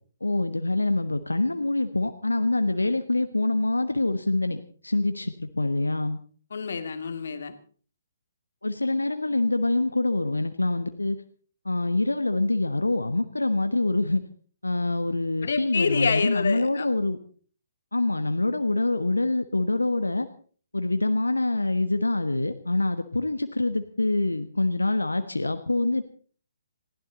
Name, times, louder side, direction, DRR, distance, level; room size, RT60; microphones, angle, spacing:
voice 1, 0.2-6.2 8.6-11.2 11.6-14.2 14.6-17.2 17.9-20.3 20.7-26.0, left 2 dB, 80° left, 8 dB, 1.3 m, -25 dB
voice 2, 6.5-7.5 15.4-16.9, left 5 dB, 55° left, 8 dB, 2.2 m, -27 dB
20.5 x 16.0 x 4.0 m, 0.43 s
figure-of-eight pair, 130°, 0 cm